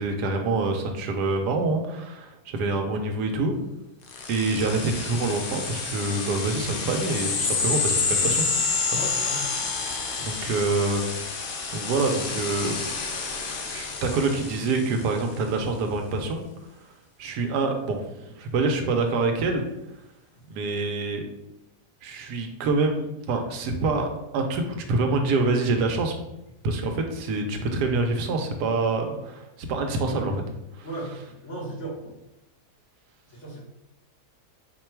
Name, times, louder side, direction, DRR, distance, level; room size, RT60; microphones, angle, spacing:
voice 1, 0.0-3.6 4.3-8.5 8.9-9.0 10.2-11.0 11.7-13.1 13.7-16.5 17.2-18.0 18.4-19.6 20.5-21.3 22.0-24.1 24.3-26.1 26.6-30.4 30.8-30.9, right 3 dB, 85° right, 4 dB, 1.2 m, -26 dB
sound 1, 4.1-15.2, left 4 dB, 75° left, 1.3 m, -29 dB
voice 2, 8.9-9.5 30.8-32.0 33.3-33.6, right 1 dB, 50° left, -6 dB, 1.4 m, -36 dB
4.5 x 2.2 x 4.4 m, 0.88 s
omnidirectional pair, 1.7 m